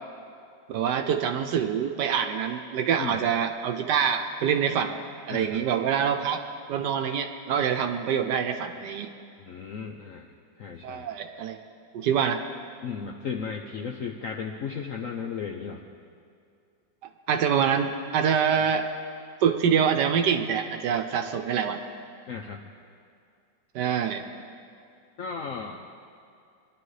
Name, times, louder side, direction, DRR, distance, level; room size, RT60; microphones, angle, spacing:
voice 1, 0.7-5.0 5.3-6.4 6.7-9.1 10.8-11.6 11.9-12.4 17.3-18.9 19.4-21.8 23.7-24.2, right 7 dB, 70° right, 6 dB, 1.2 m, -25 dB
voice 2, 5.3-5.6 9.4-10.3 10.6-11.1 12.8-15.8 22.3-22.6 25.2-25.8, left 6 dB, 65° left, 1 dB, 0.8 m, -35 dB
22.0 x 11.5 x 3.2 m, 2.4 s
omnidirectional pair, 2.0 m